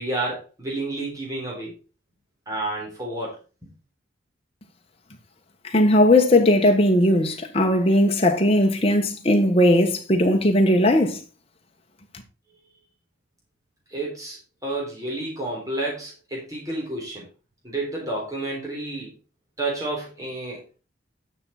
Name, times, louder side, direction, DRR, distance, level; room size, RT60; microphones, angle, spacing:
voice 1, 0.0-1.7 2.5-3.4 3.6-3.7 13.9-17.3 17.6-19.1 19.6-20.6, right 2 dB, 20° right, 3.6 m, -30 dB
voice 2, 5.7-11.2, left 1 dB, 30° left, 1.5 m, -18 dB
11.0 x 6.3 x 4.2 m
head